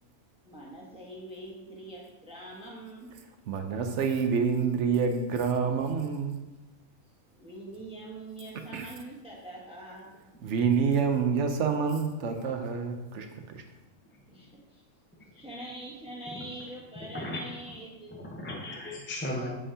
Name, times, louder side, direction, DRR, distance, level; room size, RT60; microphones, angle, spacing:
voice 1, 0.4-3.1 7.3-10.1 14.3-14.8 15.3-18.2, right 1 dB, 5° right, -4 dB, 1.0 m, -44 dB
voice 2, 3.5-6.4 8.7-8.9 10.4-13.3 13.5-13.6, right 6 dB, 65° right, 5 dB, 0.8 m, -27 dB
voice 3, 18.1-19.5, left 1 dB, 10° left, -1 dB, 0.6 m, -36 dB
7.6 x 5.6 x 2.8 m, 1.1 s
omnidirectional pair, 1.4 m